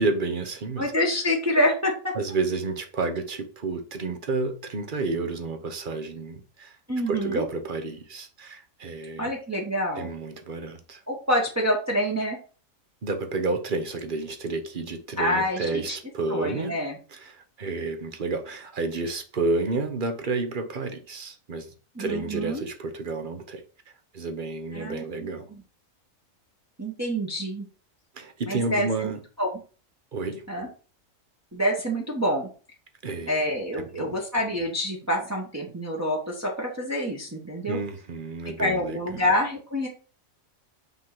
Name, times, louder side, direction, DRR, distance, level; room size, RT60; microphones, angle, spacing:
voice 1, 0.0-0.9 2.1-6.8 7.1-9.3 10.0-11.0 13.0-16.7 17.1-23.6 24.1-25.5 28.1-29.2 30.1-30.4 33.0-33.4 33.7-34.2 37.6-39.0, right 3 dB, 40° right, 1.0 m, -30 dB
voice 2, 0.8-2.1 6.9-7.4 9.2-10.1 11.1-12.4 15.2-15.8 16.3-17.0 21.9-22.6 24.7-25.6 26.8-27.7 28.5-29.1 29.4-29.5 30.5-30.7 31.5-32.5 33.3-37.8 38.6-39.9, equal, 15° right, 1.1 m, -27 dB
5.6 x 3.7 x 5.9 m
omnidirectional pair, 1.4 m